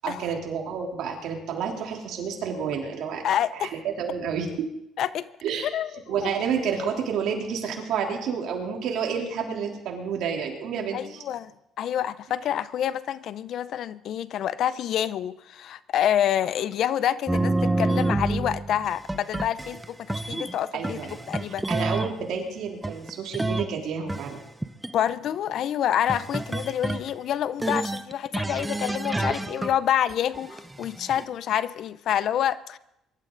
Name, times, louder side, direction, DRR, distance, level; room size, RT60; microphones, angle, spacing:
voice 1, 0.0-3.2 3.5-4.5 5.4-5.7 6.1-11.2 20.7-21.3 21.7-24.4, right 6 dB, 70° right, 1 dB, 3.3 m, -30 dB
voice 2, 3.2-3.7 5.0-5.3 5.7-6.3 10.9-11.5 11.8-21.7 24.9-32.8, left 10 dB, 60° left, 16 dB, 0.6 m, -27 dB
sound 1, 17.3-20.5 20.8-22.1 22.8-23.7 24.1-24.9 26.1-27.1 27.6-29.7 30.1-31.2, right 2 dB, 10° right, 0.8 m, -28 dB
23.0 x 12.5 x 3.9 m, 0.83 s
cardioid pair, 110°, 0 cm